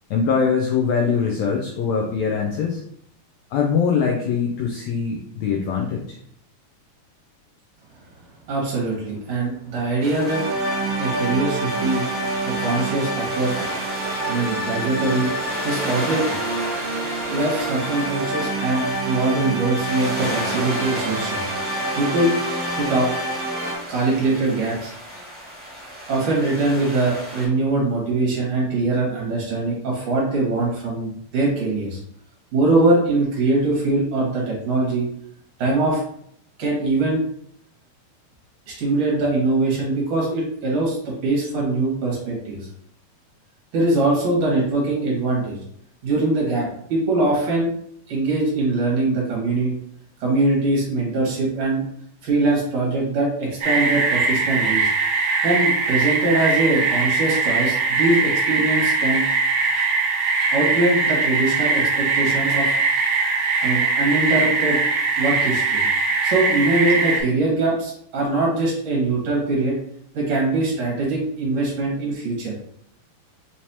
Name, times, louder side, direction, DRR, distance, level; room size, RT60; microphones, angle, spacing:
voice 1, 0.1-2.8 3.5-6.2, left 6 dB, 90° left, 0 dB, 1.5 m, -22 dB
voice 2, 8.5-10.4 11.0-12.0 12.5-13.7 14.3-16.4 17.3-21.4 22.0-22.3 22.6-23.1 23.9-24.9 26.1-32.0 32.5-35.0 35.6-36.0 36.6-37.2 38.7-42.6 43.7-45.6 46.0-47.7 48.1-49.7 50.2-51.8 52.2-54.8 55.4-59.2 60.5-62.7 63.6-64.8 65.2-65.8 66.2-69.8 70.1-72.5, right 2 dB, 55° right, -3 dB, 2.5 m, -22 dB
sound 1, 10.0-27.4, equal, 10° right, 0.4 m, -34 dB
sound 2, 10.3-23.8, right 2 dB, 75° right, 2.2 m, -27 dB
sound 3, 53.6-67.2, right 4 dB, 90° right, 1.1 m, -21 dB
5.8 x 3.1 x 2.8 m, 0.67 s
omnidirectional pair, 3.8 m